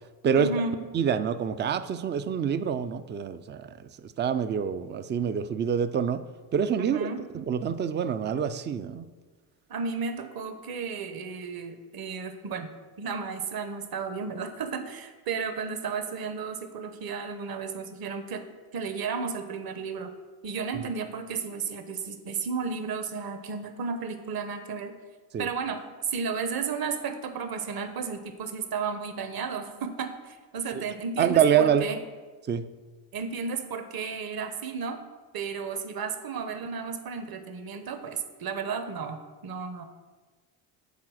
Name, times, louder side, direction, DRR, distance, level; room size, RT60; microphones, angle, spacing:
voice 1, 0.3-0.8 6.8-7.2 9.7-12.7 13.0-18.4 18.7-20.1 20.4-25.0 25.4-32.0 33.1-35.0 35.3-39.8, right 5 dB, 50° right, 8 dB, 1.0 m, -33 dB
voice 2, 0.9-6.3 6.5-7.1 7.3-9.1 25.3-25.5 30.7-30.8 31.2-31.9 32.4-32.7, right 8 dB, 25° right, 12 dB, 0.3 m, -26 dB
8.6 x 4.1 x 6.3 m, 1.4 s
cardioid pair, 95°, 48 cm